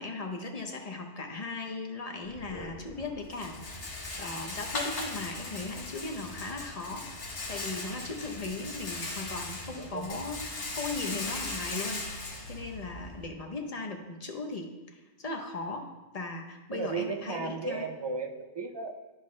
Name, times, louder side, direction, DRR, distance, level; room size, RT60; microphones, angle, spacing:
voice 1, 0.0-15.9 16.1-17.9, left 3 dB, 40° left, 3 dB, 0.8 m, -38 dB
Rattle, 2.2-13.3, left 2 dB, 90° left, 1.4 m, -39 dB
voice 2, 9.8-10.2 16.7-19.1, right 4 dB, 45° right, 4 dB, 0.3 m, -35 dB
9.8 x 5.4 x 3.2 m, 1.2 s
omnidirectional pair, 1.1 m